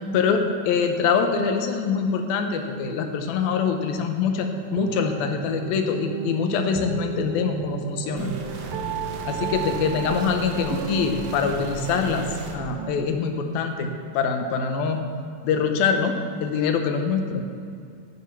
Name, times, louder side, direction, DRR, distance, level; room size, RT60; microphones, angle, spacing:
voice 1, 0.1-8.4 9.2-12.3 12.5-13.9 14.1-15.0 15.4-17.6, left 6 dB, 80° left, 5 dB, 2.8 m, -24 dB
sound 1, 4.5-13.0, right 7 dB, 80° right, 2.5 m, -33 dB
sound 2, 8.2-12.6, right 1 dB, 65° right, 1.6 m, -36 dB
14.5 x 7.2 x 6.0 m, 2.3 s
omnidirectional pair, 4.2 m